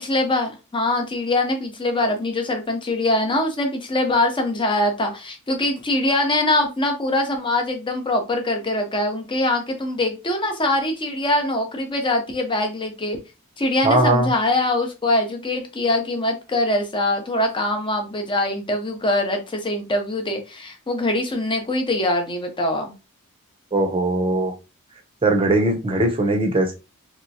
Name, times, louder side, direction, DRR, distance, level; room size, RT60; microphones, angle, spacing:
voice 1, 0.0-13.2 13.6-22.9, left 1 dB, 20° left, 0.7 m, -23 dB
voice 2, 13.8-14.3 23.7-24.5 25.2-26.8, right 2 dB, 25° right, 0.6 m, -19 dB
3.2 x 2.9 x 2.6 m
head